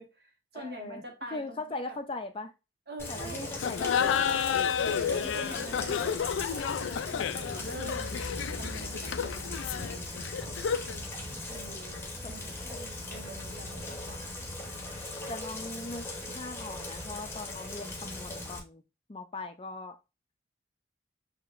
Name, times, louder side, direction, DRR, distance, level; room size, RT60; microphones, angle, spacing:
voice 1, 0.0-2.0 2.9-3.5 5.1-6.2 6.8-8.2 8.6-10.5 11.5-14.3, right 1 dB, 55° right, 1.3 m, -45 dB
voice 2, 0.5-1.0 1.3-2.5 3.1-4.4 12.2-12.3 13.9-14.0 15.3-18.8 19.1-20.0, left 2 dB, 30° left, 0.4 m, -40 dB
Rain, 3.0-18.6, left 2 dB, 15° left, 0.9 m, -39 dB
Laughter, 3.5-11.0, left 7 dB, 90° left, 0.3 m, -31 dB
6.6 x 2.9 x 2.5 m
head